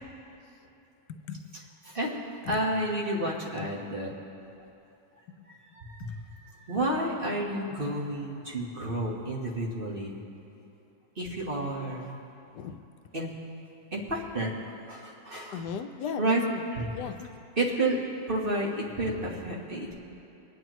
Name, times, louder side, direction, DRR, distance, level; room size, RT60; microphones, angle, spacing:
voice 1, 1.1-1.4 2.5-2.6 3.6-3.7 6.0-6.2 12.5-12.8 15.5-16.6 16.9-17.4, left 7 dB, 80° left, 7 dB, 1.2 m, -37 dB
voice 2, 1.8-2.2 2.5-4.1 5.6-10.2 11.2-12.1 13.1-13.3 13.9-14.5 14.9-15.6 16.2-16.4 16.7-16.9 17.6-18.0 18.3-20.0, right 1 dB, 35° right, -3 dB, 1.5 m, -30 dB
25.0 x 9.6 x 3.1 m, 2.8 s
omnidirectional pair, 1.8 m